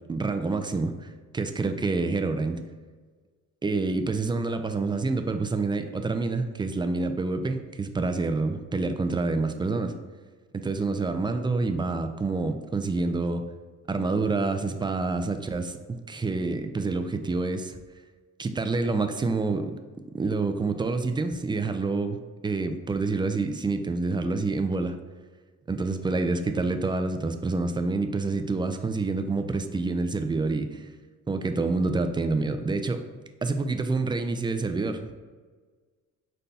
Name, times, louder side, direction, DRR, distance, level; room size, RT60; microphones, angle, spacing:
voice 1, 0.1-2.6 3.6-9.9 10.5-13.4 13.9-15.8 16.1-17.8 18.4-19.8 20.1-25.0 25.7-30.9 31.3-33.0 33.4-35.1, right 3 dB, 15° right, 7 dB, 0.3 m, -27 dB
5.4 x 2.2 x 4.0 m, 1.4 s
cardioid pair, 90°, 30 cm